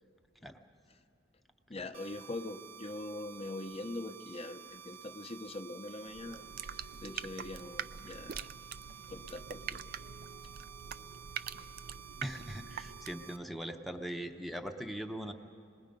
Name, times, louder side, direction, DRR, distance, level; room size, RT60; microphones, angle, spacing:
voice 1, 1.7-8.4 9.1-9.8 11.5-11.7, left 2 dB, 30° left, 6 dB, 0.8 m, -43 dB
sound 1, 1.9-13.4, right 8 dB, 30° right, 1.0 m, -52 dB
sound 2, 6.1-13.3, right 8 dB, 50° right, 0.4 m, -44 dB
voice 2, 12.2-15.3, equal, ahead, 5 dB, 0.8 m, -40 dB
27.0 x 20.5 x 5.3 m, 2.3 s
head